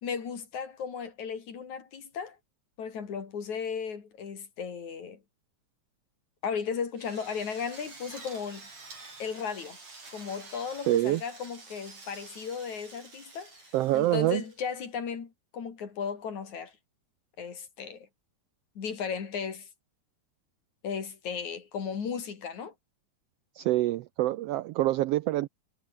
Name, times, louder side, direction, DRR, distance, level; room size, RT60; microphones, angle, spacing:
voice 1, 0.0-2.4 2.8-5.2 6.4-8.7 9.2-9.8 10.1-13.6 13.9-16.7 17.4-18.1 18.8-19.7 20.8-22.7, left 6 dB, 75° left, 4.7 m, -35 dB
Drill, 7.0-14.8, right 3 dB, 65° right, 8.8 m, -49 dB
voice 2, 10.9-11.2 13.7-14.4 23.5-25.5, right 15 dB, 80° right, 1.4 m, -26 dB
omnidirectional pair, 3.4 m